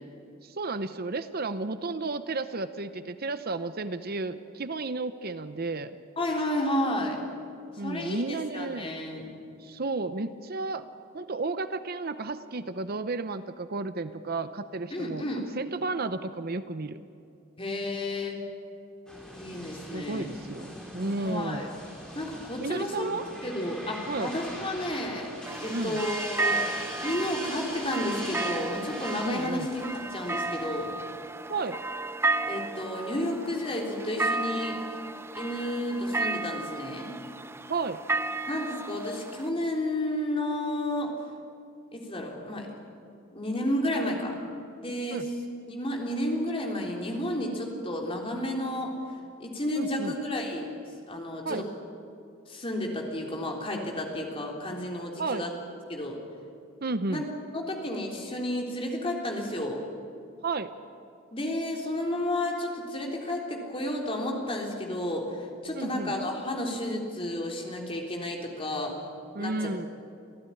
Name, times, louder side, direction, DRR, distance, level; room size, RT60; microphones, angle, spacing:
voice 1, 0.4-5.9 7.8-8.9 9.6-10.8 11.1-15.2 15.6-17.0 19.9-21.7 22.6-23.2 24.1-24.3 25.7-26.0 29.2-29.7 31.5-31.8 37.7-38.0 45.1-45.3 49.7-50.1 51.4-51.7 55.2-55.5 56.8-57.2 60.4-60.7 65.7-66.1 69.3-69.9, right 3 dB, 45° right, 11 dB, 0.8 m, -32 dB
voice 2, 6.2-7.2 7.8-9.3 14.9-15.5 17.6-18.4 19.4-20.3 21.2-21.7 22.2-23.1 23.4-25.3 25.6-26.6 27.0-30.9 32.5-34.8 35.3-37.1 38.5-41.1 41.9-42.7 43.3-44.4 44.8-45.3 45.7-49.0 49.4-50.7 51.1-51.6 52.5-55.5 55.9-56.2 57.1-57.2 57.5-59.8 61.3-68.9 69.4-69.9, left 1 dB, 25° left, 0 dB, 3.7 m, -31 dB
sound 1, 19.1-31.1, equal, 5° left, 4.9 m, -42 dB
sound 2, 25.4-39.5, right 3 dB, 10° right, 0.7 m, -33 dB
27.0 x 15.0 x 9.9 m, 2.6 s
head